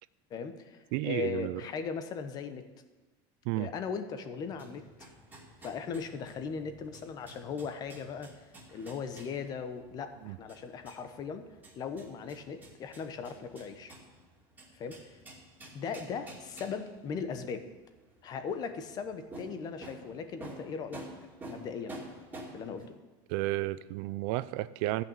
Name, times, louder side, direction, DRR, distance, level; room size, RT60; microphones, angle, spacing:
voice 1, 0.3-2.6 3.5-4.8 5.6-11.5 11.7-13.9 14.7-15.2 15.7-17.6 18.2-21.0 21.4-21.9 22.5-22.8, left 5 dB, 35° left, 9 dB, 1.1 m, -38 dB
voice 2, 0.9-1.6 3.5-3.7 10.2-10.4 23.3-25.0, right 17 dB, 70° right, 16 dB, 0.5 m, -32 dB
sound 1, 4.4-22.9, right 1 dB, 15° right, 2.6 m, -50 dB
14.0 x 5.9 x 9.0 m, 1.2 s
cardioid pair, 155°, 11 cm